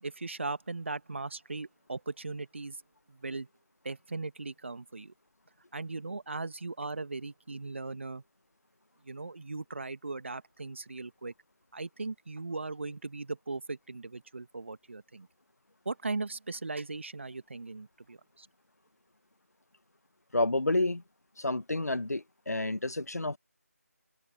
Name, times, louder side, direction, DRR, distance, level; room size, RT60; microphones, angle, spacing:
voice 1, 0.0-2.8 3.1-3.5 3.8-5.1 5.7-8.2 9.1-11.3 11.7-15.3 15.8-18.5, right 3 dB, 50° right, 1.6 m, -38 dB
voice 2, 20.3-21.0 21.4-23.4, left 2 dB, 80° left, 1.2 m, -29 dB
open air
figure-of-eight pair, 165°, 8 cm